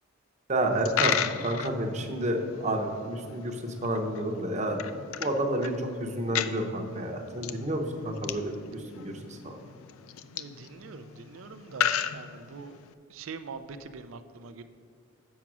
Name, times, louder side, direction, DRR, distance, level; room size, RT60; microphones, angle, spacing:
voice 1, 0.5-4.8 5.2-9.6, right 1 dB, 35° right, 4 dB, 0.8 m, -30 dB
Coin (dropping), 0.7-12.9, left 9 dB, 75° left, 0.4 m, -35 dB
voice 2, 10.3-12.8 13.1-14.6, right 4 dB, 65° right, 10 dB, 0.4 m, -43 dB
7.3 x 5.8 x 6.0 m, 2.2 s
head